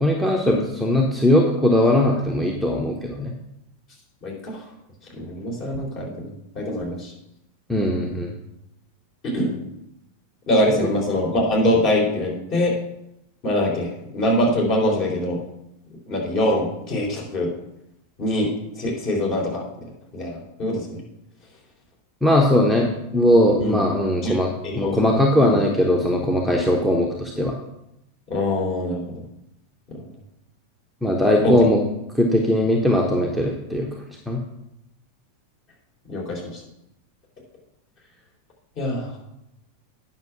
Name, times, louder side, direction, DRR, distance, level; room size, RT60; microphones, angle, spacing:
voice 1, 0.0-3.3 7.7-8.3 22.2-24.5 24.7-27.6 31.0-31.8 32.2-33.9 34.3-34.4, left 1 dB, ahead, -1 dB, 1.1 m, -19 dB
voice 2, 4.2-4.6 5.1-7.1 9.2-9.6 10.5-12.7 13.4-15.4 16.1-17.5 18.2-18.5 18.8-19.6 20.1-21.0 23.6-23.8 24.2-24.3 24.6-24.9 25.3-25.6 28.3-29.1 29.9-30.0 31.4-31.5 36.1-36.6 38.8-39.1, left 1 dB, 40° left, -2 dB, 3.6 m, -23 dB
9.5 x 6.1 x 5.8 m, 0.84 s
figure-of-eight pair, 90°, 0 cm